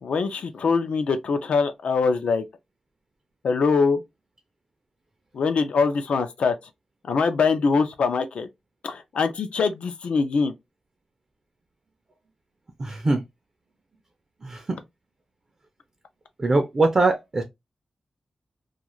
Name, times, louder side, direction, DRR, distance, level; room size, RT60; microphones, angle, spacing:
voice 1, 0.0-2.4 3.4-4.0 5.3-6.5 7.1-8.5 8.8-10.5, left 4 dB, 80° left, 0.5 m, -23 dB
voice 2, 12.8-13.2 14.4-14.8 16.4-17.4, right 2 dB, 30° right, 0.4 m, -22 dB
2.4 x 2.4 x 3.0 m
wide cardioid pair, 175°, 2 cm